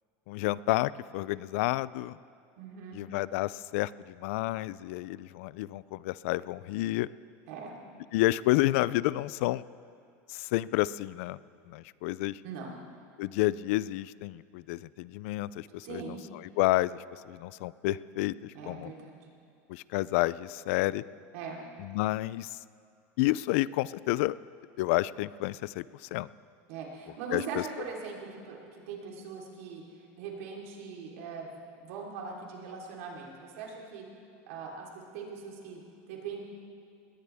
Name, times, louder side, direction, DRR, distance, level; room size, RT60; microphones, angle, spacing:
voice 1, 0.3-2.2 2.9-7.1 8.1-9.6 10.3-11.4 11.7-12.4 13.2-16.0 16.6-18.9 19.7-21.0 21.8-22.5 23.2-24.4 24.8-26.3 27.3-27.6, left 17 dB, 75° left, 19 dB, 0.4 m, -30 dB
voice 2, 2.6-3.0 7.5-7.8 12.4-12.8 15.8-16.2 18.5-19.2 21.3-21.6 26.7-31.5 31.8-34.0 34.5-35.8 36.1-36.4, right 5 dB, 80° right, -2 dB, 3.8 m, -41 dB
20.0 x 19.0 x 3.5 m, 2.5 s
supercardioid pair, 135°, 7 cm